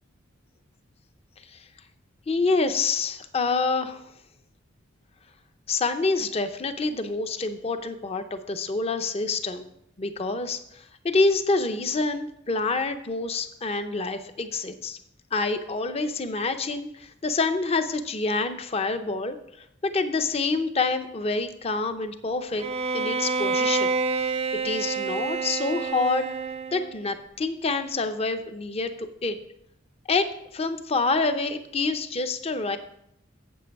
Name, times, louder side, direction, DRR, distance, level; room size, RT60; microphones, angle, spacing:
voice 1, 2.3-4.0 5.7-9.7 10.0-15.0 15.3-19.4 19.8-22.6 22.9-23.9 24.6-26.2 26.7-29.4 30.1-32.8, left 3 dB, 30° left, 9 dB, 0.6 m, -27 dB
Bowed string instrument, 22.6-27.0, right 4 dB, 30° right, 0.3 m, -28 dB
8.4 x 7.8 x 4.7 m, 0.77 s
head